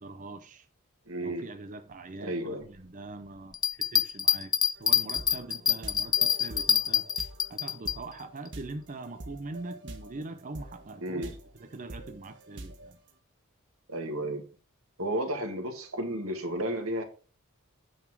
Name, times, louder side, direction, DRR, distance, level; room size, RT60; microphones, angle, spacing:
voice 1, 0.0-0.7 1.2-7.0 7.5-13.0, right 2 dB, 40° right, 0.7 m, -43 dB
voice 2, 1.1-1.4 2.2-2.6 11.0-11.4 13.9-14.4 15.0-17.0, right 1 dB, 90° right, 2.0 m, -32 dB
Bell, 3.5-8.0 8.5-8.6, left 8 dB, 20° left, 0.4 m, -26 dB
sound 1, 4.8-10.2 10.5-12.9, right 2 dB, 60° right, 1.5 m, -45 dB
9.0 x 4.2 x 6.0 m
head